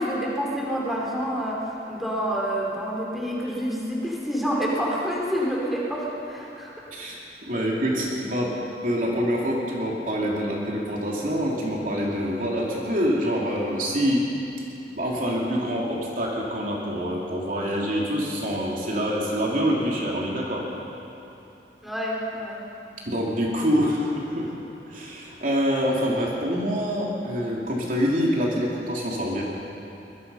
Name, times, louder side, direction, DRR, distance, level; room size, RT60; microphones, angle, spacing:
voice 1, 0.0-6.7 21.8-22.6, equal, ahead, -5 dB, 4.2 m, -28 dB
voice 2, 6.9-8.5 8.8-14.3 14.9-20.6 23.0-24.5 24.9-29.4, equal, 50° right, -3 dB, 3.1 m, -26 dB
24.0 x 21.0 x 5.7 m, 2.9 s
head